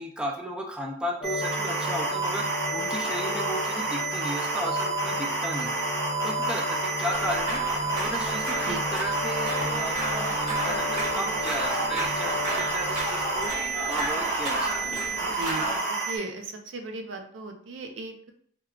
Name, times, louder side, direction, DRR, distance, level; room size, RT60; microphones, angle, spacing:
voice 1, 0.0-2.5 2.7-5.8 6.2-7.6 8.0-10.0 10.4-15.0, equal, 5° right, -1 dB, 0.3 m, -35 dB
sound 1, 1.2-13.5, left 4 dB, 40° left, 0.7 m, -35 dB
sound 2, 1.2-16.2, right 3 dB, 60° right, 1.0 m, -29 dB
sound 3, 7.1-15.8, right 2 dB, 45° right, 1.3 m, -33 dB
voice 2, 15.2-18.3, right 3 dB, 85° right, 5 dB, 0.4 m, -37 dB
3.5 x 2.3 x 2.2 m, 0.62 s
head